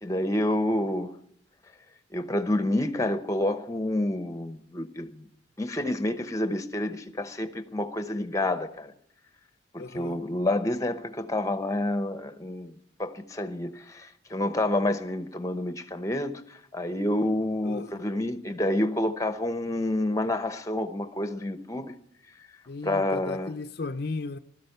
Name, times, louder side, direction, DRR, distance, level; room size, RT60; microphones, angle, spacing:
voice 1, 0.0-1.1 2.1-5.3 5.6-8.9 9.7-12.7 13.0-16.3 16.7-21.9 22.8-23.5, left 1 dB, 15° left, 0.9 m, -28 dB
voice 2, 9.8-10.2 17.6-17.9 22.7-24.4, left 3 dB, 55° left, 0.6 m, -35 dB
16.0 x 13.0 x 6.7 m
head